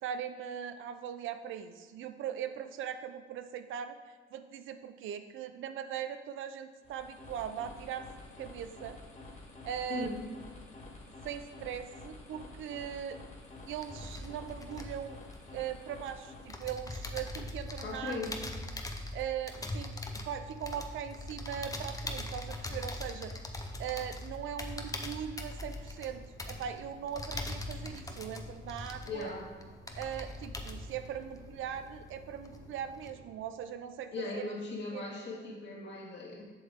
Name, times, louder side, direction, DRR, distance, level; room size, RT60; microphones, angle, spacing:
voice 1, 0.0-4.0 4.3-8.1 8.4-9.0 9.6-10.2 11.2-13.2 13.7-15.2 15.5-18.2 19.1-19.9 20.3-23.3 23.8-29.3 29.9-34.5 34.9-35.0, right 9 dB, 80° right, 9 dB, 0.6 m, -40 dB
sound 1, 6.8-16.7, left 2 dB, 35° left, 1.9 m, -50 dB
voice 2, 9.9-10.2 17.8-18.4 29.0-29.5 34.1-36.4, left 3 dB, 60° left, -2 dB, 2.1 m, -38 dB
sound 2, 13.5-16.1 16.5-32.2 32.4-33.1, left 1 dB, 15° left, 0.8 m, -41 dB
sound 3, 25.6-34.1, left 2 dB, 80° left, 2.1 m, -55 dB
7.5 x 6.5 x 3.7 m, 1.5 s
cardioid pair, 90°, 20 cm